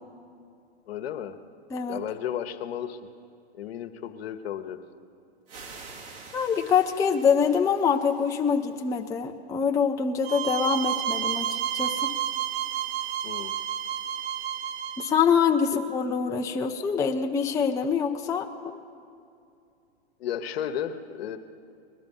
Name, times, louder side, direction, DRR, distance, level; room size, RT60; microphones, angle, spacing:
voice 1, 0.9-1.4 1.9-3.0 3.5-4.8 13.2-13.5 15.7-15.8 20.2-21.4, left 9 dB, 65° left, 9 dB, 1.1 m, -33 dB
sound 1, 5.5-9.1, right 4 dB, 60° right, 3.4 m, -47 dB
voice 2, 6.3-12.1 15.0-18.8, left 6 dB, 10° left, 3 dB, 0.5 m, -25 dB
sound 2, 10.2-15.1, right 10 dB, 35° right, 0.7 m, -30 dB
20.5 x 12.5 x 5.5 m, 2.5 s
hypercardioid pair, 120°, 33 cm